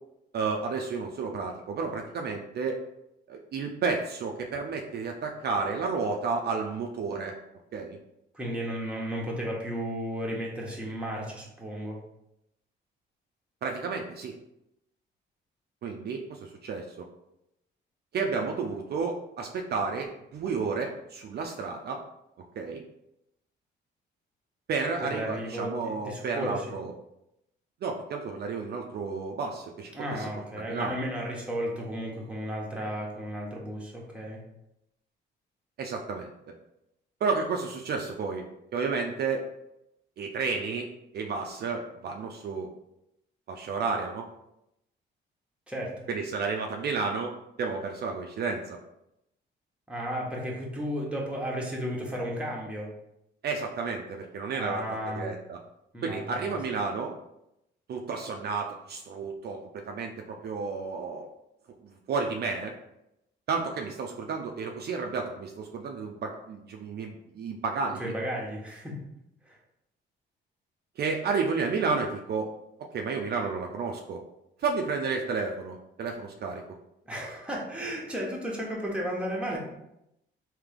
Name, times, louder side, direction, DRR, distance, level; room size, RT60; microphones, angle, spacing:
voice 1, 0.3-2.8 3.3-7.3 7.7-8.0 13.6-14.3 15.8-17.0 18.1-22.0 22.6-22.8 24.7-26.9 27.8-30.3 30.6-31.0 35.8-36.3 37.2-38.5 38.7-39.4 40.2-40.9 41.1-42.7 43.5-44.2 46.1-47.3 47.6-48.8 53.4-55.6 56.0-57.1 57.9-61.3 61.8-62.7 63.5-68.1 71.0-72.5 72.9-74.2 74.6-76.6, right 4 dB, 55° right, 2 dB, 0.5 m, -31 dB
voice 2, 8.3-12.0 25.0-26.7 29.9-34.4 45.7-45.9 49.9-52.9 54.5-55.3 55.9-56.6 68.0-69.0 69.4-69.6 77.1-79.6, equal, 5° right, -3 dB, 1.1 m, -34 dB
3.3 x 2.8 x 3.6 m, 0.83 s
cardioid pair, 90°, 20 cm